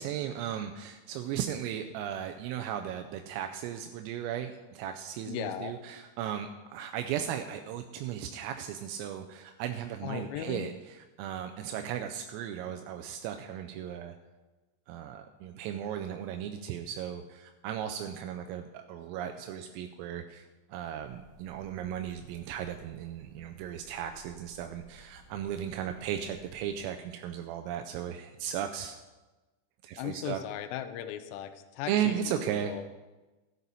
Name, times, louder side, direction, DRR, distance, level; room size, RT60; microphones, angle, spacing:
voice 1, 0.0-14.2 14.9-20.4 20.7-29.0 29.8-30.4 31.9-32.7, right 10 dB, 85° right, 5 dB, 3.2 m, -36 dB
voice 2, 5.3-5.7 10.0-10.7 30.0-32.2 32.4-32.8, left 10 dB, 80° left, 9 dB, 3.2 m, -37 dB
sound 1, 21.0-26.8, right 3 dB, 55° right, 2.9 m, -57 dB
13.5 x 9.6 x 4.1 m, 1.2 s
omnidirectional pair, 6.0 m